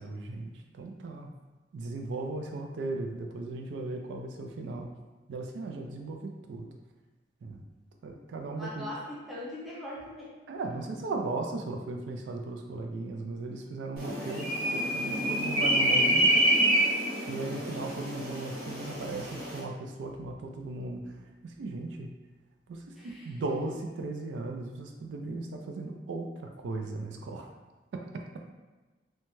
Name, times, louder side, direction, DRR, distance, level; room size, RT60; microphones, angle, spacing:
voice 1, 0.0-1.3 1.7-4.9 5.3-6.7 7.4-7.6 8.0-8.9 10.5-16.3 17.3-22.1 22.7-27.5 27.9-28.4, right 2 dB, 75° right, 3 dB, 0.3 m, -37 dB
voice 2, 8.6-10.4 23.0-23.3, left 1 dB, ahead, -7 dB, 0.6 m, -41 dB
sound 1, 14.0-19.6, right 1 dB, 60° right, 1.0 m, -27 dB
2.6 x 2.2 x 3.0 m, 1.2 s
head